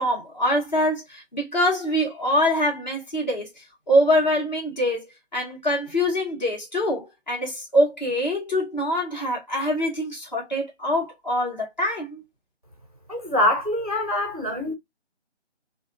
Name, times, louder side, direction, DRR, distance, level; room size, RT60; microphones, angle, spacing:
voice 1, 0.0-5.0 5.3-12.2, equal, 35° left, 1.3 m, -24 dB
voice 2, 13.1-14.7, left 1 dB, 35° right, 0.4 m, -24 dB
2.6 x 2.4 x 2.4 m
figure-of-eight pair, 170°, 36 cm